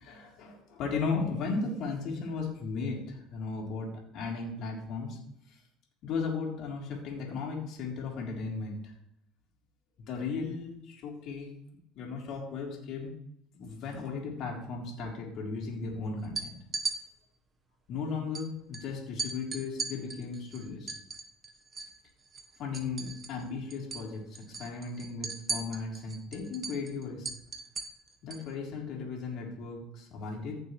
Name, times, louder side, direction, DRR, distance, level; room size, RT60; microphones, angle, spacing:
voice 1, 0.0-5.2 5.5-5.6 6.0-8.9 10.1-11.5 11.9-13.1 13.5-16.6 17.9-20.9 22.6-27.3 28.2-30.5, left 4 dB, 55° left, -1 dB, 3.5 m, -36 dB
sound 1, 16.2-17.0 18.3-18.4 18.7-18.8 19.2-22.0 22.3-23.5 23.7-24.1 24.4-28.5, right 4 dB, 25° right, 1.2 m, -37 dB
15.5 x 6.8 x 3.2 m, 0.78 s
supercardioid pair, 110°, 0 cm